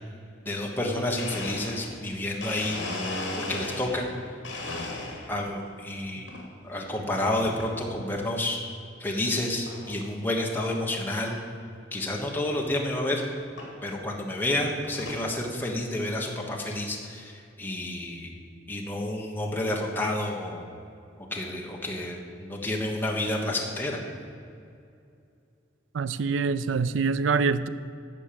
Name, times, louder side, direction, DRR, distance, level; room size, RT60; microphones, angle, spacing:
voice 1, 0.4-2.8 3.4-4.1 5.3-6.3 6.6-8.6 9.0-11.4 11.9-13.2 13.8-18.3 18.7-20.6 21.3-24.0, left 1 dB, 10° left, -1 dB, 1.2 m, -30 dB
Domestic sounds home sounds, 1.2-4.1 4.4-5.5 5.9-6.4 7.4-7.8 8.3-8.4 9.3-9.4 9.7-10.0 10.4-10.5 10.7-10.8 11.3-11.4 12.7-12.8 13.6-13.7 14.4-15.3, left 2 dB, 65° left, 2.4 m, -36 dB
voice 2, 25.9-27.7, right 5 dB, 80° right, 15 dB, 0.4 m, -25 dB
11.0 x 6.2 x 8.7 m, 2.4 s
head